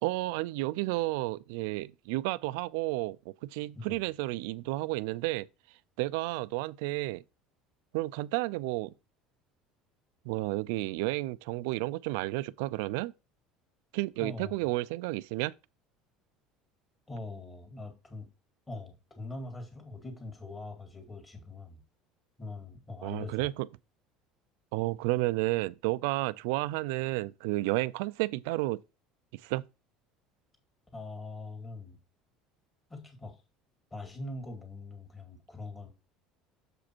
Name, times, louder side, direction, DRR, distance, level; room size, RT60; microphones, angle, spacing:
voice 1, 0.0-5.5 6.0-7.2 7.9-8.9 10.2-13.1 13.9-15.5 23.0-23.7 24.7-28.8 29.3-29.7, right 20 dB, 85° right, 0.4 m, -31 dB
voice 2, 14.2-14.5 17.1-18.3 18.7-21.8 22.4-23.5 30.9-32.0 32.9-33.4 33.9-35.9, left 2 dB, 15° left, 1.9 m, -42 dB
7.1 x 5.1 x 4.4 m
cardioid pair, 155°, 0 cm